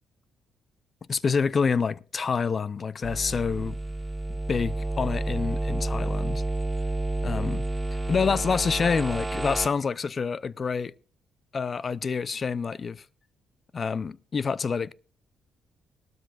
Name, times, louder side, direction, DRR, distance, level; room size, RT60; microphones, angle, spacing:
voice 1, 1.1-3.8 4.3-6.4 7.2-7.6 8.1-10.9 11.5-13.0 13.7-14.9, left 5 dB, 40° left, 0.5 m, -27 dB
sound 1, 3.0-9.7, right 2 dB, 15° right, 0.5 m, -30 dB
19.0 x 13.0 x 2.5 m
cardioid pair, 90°, 0 cm